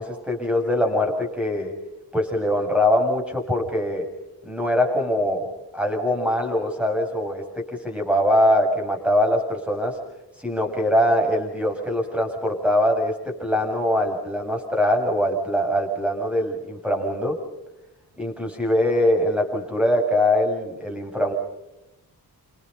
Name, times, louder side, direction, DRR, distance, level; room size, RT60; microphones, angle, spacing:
voice 1, 0.0-1.7 2.1-4.1 4.4-10.0 10.4-17.4 18.2-21.3, left 1 dB, 5° right, 1 dB, 7.5 m, -22 dB
29.5 x 28.0 x 5.6 m, 0.94 s
wide cardioid pair, 100°, 39 cm